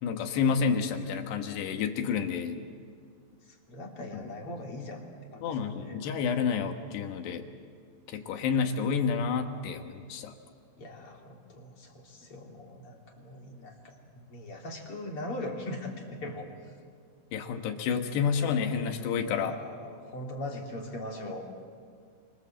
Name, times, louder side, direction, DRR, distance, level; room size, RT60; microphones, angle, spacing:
voice 1, 0.0-2.6 5.4-7.5 8.1-10.3 17.3-19.5, left 6 dB, 65° left, 5 dB, 3.3 m, -29 dB
voice 2, 3.5-5.0 5.3-6.0 10.8-16.5 19.3-21.4, left 1 dB, 35° left, 0 dB, 3.1 m, -40 dB
29.5 x 25.5 x 7.7 m, 2.1 s
omnidirectional pair, 5.7 m